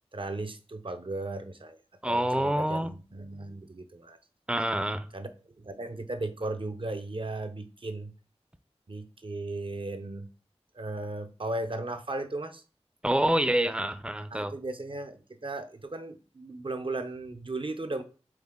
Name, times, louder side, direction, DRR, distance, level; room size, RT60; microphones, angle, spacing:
voice 1, 0.1-1.8 2.1-4.2 5.1-5.3 5.6-8.1 8.9-10.3 10.7-12.6 14.3-18.0, right 2 dB, 50° right, 0.8 m, -36 dB
voice 2, 2.0-2.9 4.5-5.1 13.0-14.5, right 1 dB, 10° right, 0.5 m, -27 dB
8.0 x 3.9 x 3.7 m
wide cardioid pair, 55°, 11 cm